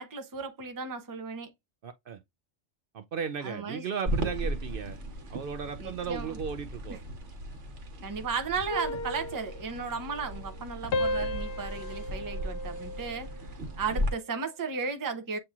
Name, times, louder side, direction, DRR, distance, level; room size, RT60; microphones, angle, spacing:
voice 1, 0.0-1.5 3.4-3.9 5.8-6.4 6.9-7.0 8.0-15.4, right 5 dB, 25° right, 0.5 m, -35 dB
voice 2, 1.8-2.2 2.9-5.0 5.3-7.0, right 6 dB, 60° right, 0.7 m, -35 dB
sound 1, 4.1-14.1, right 1 dB, 85° right, 1.5 m, -36 dB
sound 2, 8.7-10.6 10.9-13.5 13.9-14.3, left 2 dB, 65° left, 0.8 m, -35 dB
7.6 x 2.8 x 2.3 m
omnidirectional pair, 1.2 m